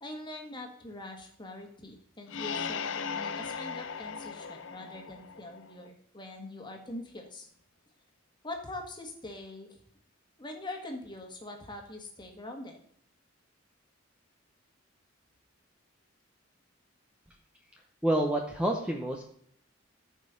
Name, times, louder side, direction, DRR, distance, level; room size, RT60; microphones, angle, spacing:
voice 1, 0.0-7.5 8.4-9.8 10.4-12.8, left 2 dB, 20° left, 2 dB, 1.7 m, -43 dB
sound 1, 2.3-5.9, left 6 dB, 65° left, 0.6 m, -37 dB
voice 2, 18.0-19.2, right 1 dB, 5° right, 1 dB, 0.9 m, -28 dB
14.0 x 5.5 x 3.9 m, 0.64 s
head